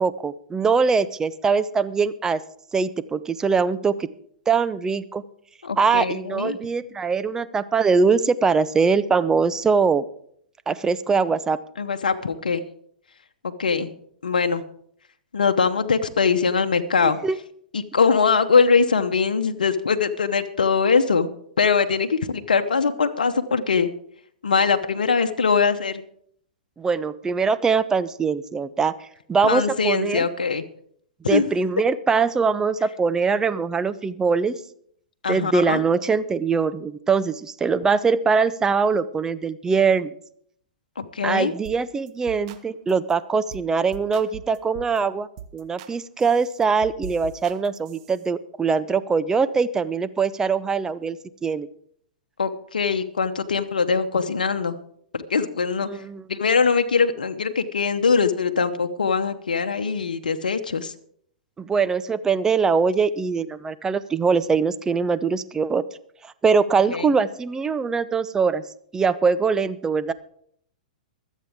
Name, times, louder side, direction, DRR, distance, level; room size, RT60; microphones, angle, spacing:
voice 1, 0.0-2.4 2.7-4.1 4.5-5.2 5.8-10.0 10.7-11.6 17.0-17.4 26.8-28.9 29.3-30.3 31.3-34.6 35.3-40.1 41.2-45.3 45.5-51.2 51.4-51.7 55.9-56.2 61.6-65.8 66.2-68.6 68.9-70.1, right 5 dB, 15° right, 14 dB, 0.6 m, -22 dB
voice 2, 5.6-6.6 11.8-12.6 13.4-13.9 14.2-14.6 15.3-17.2 17.7-21.3 21.6-23.9 24.4-26.0 29.4-30.7 31.3-31.5 35.2-35.8 41.0-41.5 52.4-54.8 55.1-56.0 56.3-60.9 66.9-67.1, left 5 dB, 80° left, 7 dB, 1.0 m, -22 dB
sound 1, 41.6-41.8 42.1-42.6 42.9-43.1 43.5-43.7 43.9-45.0 45.4-45.9 46.2-48.2, right 8 dB, 50° right, 1.3 m, -41 dB
24.5 x 8.3 x 3.6 m, 0.65 s
hypercardioid pair, 115°, 4 cm